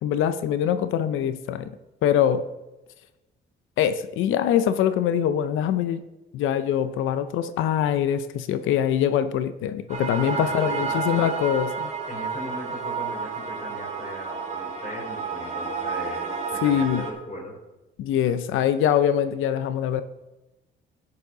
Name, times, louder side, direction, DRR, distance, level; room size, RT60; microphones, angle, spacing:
voice 1, 0.0-1.7 2.0-2.4 3.8-6.0 6.3-11.9 16.6-17.0 18.0-20.0, left 9 dB, 85° left, 12 dB, 0.6 m, -23 dB
sound 1, 9.9-17.1, right 5 dB, 35° right, 2.2 m, -31 dB
voice 2, 10.3-11.4 12.1-16.2 16.5-17.6, left 1 dB, 40° left, -2 dB, 4.1 m, -38 dB
12.0 x 9.7 x 3.9 m, 1.0 s
cardioid pair, 90°, 20 cm